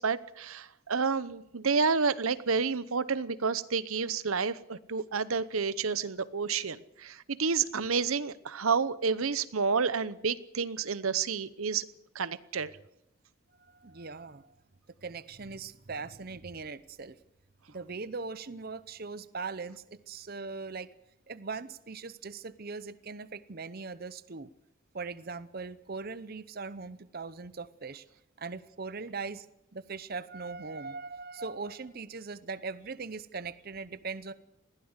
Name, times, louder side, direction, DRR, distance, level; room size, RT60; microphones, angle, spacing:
voice 1, 0.0-11.9 12.1-12.7, right 5 dB, 80° right, 16 dB, 0.9 m, -30 dB
voice 2, 13.6-14.5 15.0-17.2 17.7-20.9 21.3-24.5 24.9-28.0 28.4-29.5 29.7-34.3, right 4 dB, 45° right, 14 dB, 0.7 m, -40 dB
21.0 x 15.5 x 8.1 m, 0.82 s
head